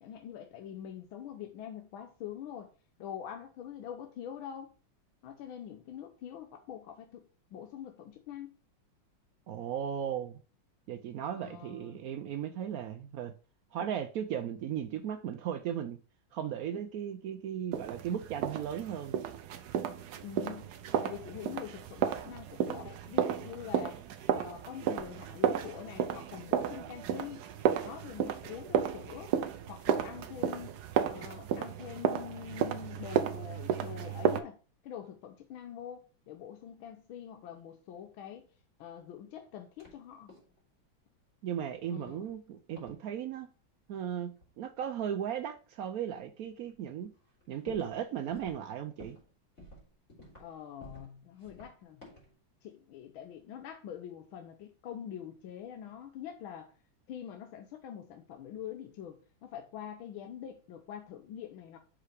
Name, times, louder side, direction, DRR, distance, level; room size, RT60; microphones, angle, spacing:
voice 1, 0.0-2.7 3.0-4.7 5.2-8.6 11.3-12.0 20.2-20.7 21.0-24.0 24.3-27.5 27.8-29.3 29.7-30.8 31.1-34.6 34.8-38.5 38.8-40.3 41.9-42.3 50.4-52.1 52.6-56.7 57.1-61.8, left 9 dB, 80° left, 1.6 m, -45 dB
voice 2, 9.5-10.4 10.9-13.3 13.7-16.0 16.3-19.2 41.4-43.5 43.9-47.1 47.5-49.2, right 9 dB, 85° right, 0.7 m, -36 dB
sound 1, 17.7-34.4, right 9 dB, 65° right, 1.1 m, -33 dB
sound 2, 39.8-40.0 40.3-40.6 42.1-42.4 42.8-43.0 44.4-44.5 45.4-45.5 46.1-46.2 46.7-46.8 47.0-48.0 48.3-48.6 49.0-49.3 49.6-50.5 50.8-51.1 51.4-52.3, left 1 dB, 35° left, 3.7 m, -53 dB
5.8 x 5.0 x 4.8 m
omnidirectional pair, 2.2 m